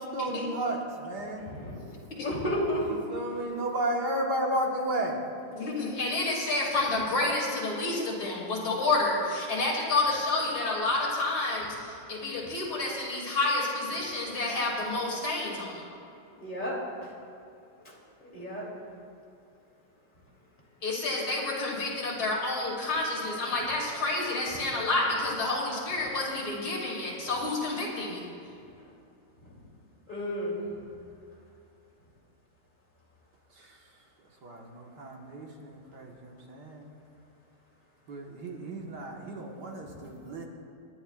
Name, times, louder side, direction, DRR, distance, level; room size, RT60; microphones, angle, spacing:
voice 1, 0.0-1.4 2.8-5.2 33.5-34.0 34.4-36.9 38.1-40.4, right 1 dB, 60° right, -1 dB, 2.0 m, -33 dB
voice 2, 1.4-1.8 2.2-2.8 16.3-16.8 17.0-17.1 18.3-18.7 21.0-21.2 29.4-29.5 30.1-30.6 39.9-40.0, equal, 25° left, -5 dB, 3.1 m, -32 dB
voice 3, 5.5-15.9 20.8-28.2, left 2 dB, 85° left, -4 dB, 3.6 m, -29 dB
28.0 x 11.0 x 2.4 m, 2.6 s
omnidirectional pair, 2.2 m